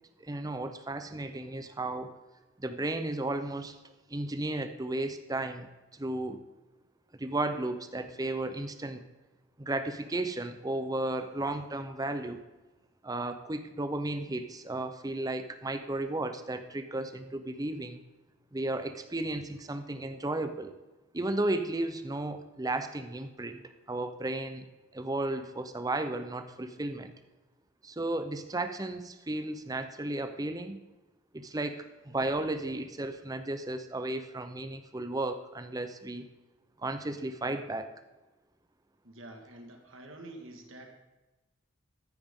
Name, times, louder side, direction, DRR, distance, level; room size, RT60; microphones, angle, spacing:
voice 1, 0.2-2.1 2.6-3.8 4.1-6.4 7.2-9.0 9.6-12.4 13.0-18.0 18.5-20.7 21.1-23.6 23.9-24.7 24.9-27.1 27.8-30.8 31.3-36.3 36.8-37.9, right 2 dB, 20° right, 9 dB, 0.7 m, -34 dB
voice 2, 39.0-41.0, right 1 dB, 80° right, 3 dB, 1.8 m, -48 dB
14.0 x 9.2 x 3.7 m, 1.1 s
head